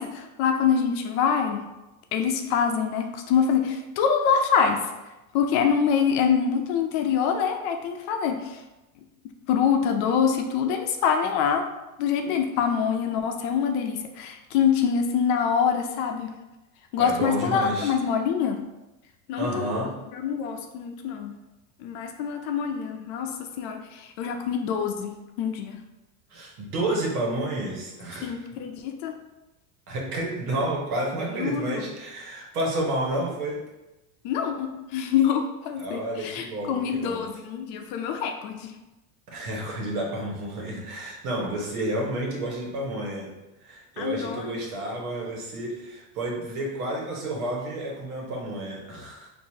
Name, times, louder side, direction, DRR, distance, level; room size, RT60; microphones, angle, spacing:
voice 1, 0.0-1.7 2.1-4.9 5.3-8.6 9.5-11.6 12.0-16.3 16.9-18.6 19.3-19.7 20.1-21.4 21.8-25.8 28.2-29.2 31.4-31.9 34.2-38.7 44.0-44.5, left 7 dB, 55° left, 5 dB, 0.6 m, -25 dB
voice 2, 17.0-17.9 19.4-20.0 26.3-28.5 29.9-33.6 35.8-37.2 39.3-43.3 43.6-49.3, right 1 dB, 80° right, -2 dB, 1.4 m, -30 dB
4.5 x 2.7 x 2.8 m, 1.0 s
supercardioid pair, 120°, 43 cm